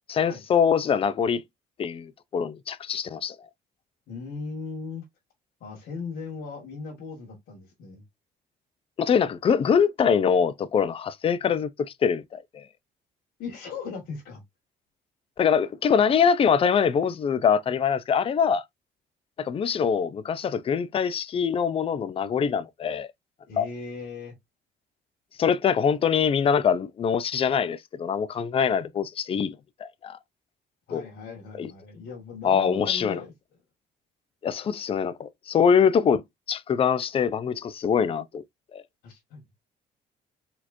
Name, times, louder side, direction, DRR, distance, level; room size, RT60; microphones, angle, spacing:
voice 1, 0.1-1.4 1.8-3.4 9.0-11.7 12.0-12.7 15.4-18.6 19.4-23.1 23.6-23.7 25.4-30.2 30.9-31.0 31.6-31.7 32.4-33.2 34.4-36.2 36.5-38.4 38.7-38.8, left 7 dB, 35° left, 0.5 m, -24 dB
voice 2, 4.1-5.0 5.6-8.0 13.4-14.4 23.5-24.3 30.9-33.3 39.0-39.4, left 4 dB, 65° left, 1.8 m, -38 dB
4.2 x 3.0 x 2.5 m
cardioid pair, 110°, 17 cm